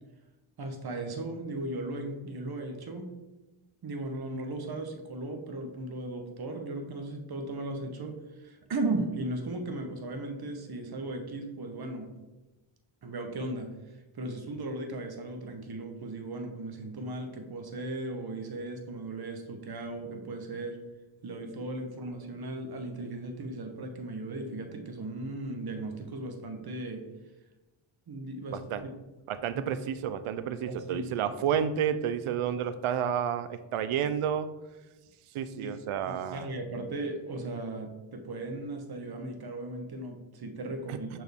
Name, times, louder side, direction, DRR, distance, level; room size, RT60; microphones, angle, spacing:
voice 1, 0.6-3.1 3.8-12.1 13.0-13.7 14.1-20.8 21.2-27.0 28.1-28.9 29.5-29.6 30.7-31.1 35.6-35.8 36.0-41.2, right 2 dB, 50° right, 4 dB, 1.0 m, -37 dB
voice 2, 28.5-28.8 29.3-34.5 35.3-36.5 40.9-41.0, right 8 dB, 80° right, 12 dB, 0.6 m, -30 dB
6.0 x 4.5 x 3.5 m, 1.1 s
cardioid pair, 90°, 49 cm